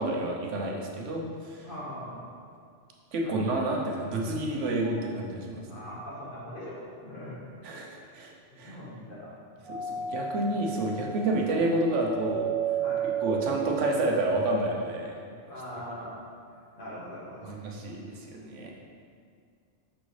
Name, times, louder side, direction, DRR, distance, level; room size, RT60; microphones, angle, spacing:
voice 1, 0.0-1.7 3.1-5.7 7.6-8.3 8.6-8.8 9.7-12.5 13.2-15.2 17.4-18.7, right 2 dB, 90° right, -1 dB, 1.1 m, -29 dB
voice 2, 1.6-2.2 3.2-3.5 5.7-7.4 7.9-8.2 8.5-9.4 12.8-13.1 15.5-16.1 16.7-17.7 18.6-18.7, equal, 50° left, -6 dB, 1.5 m, -41 dB
Doorbell, 9.6-14.5, right 8 dB, 5° left, 1.0 m, -33 dB
6.3 x 5.9 x 3.2 m, 2.2 s
omnidirectional pair, 1.2 m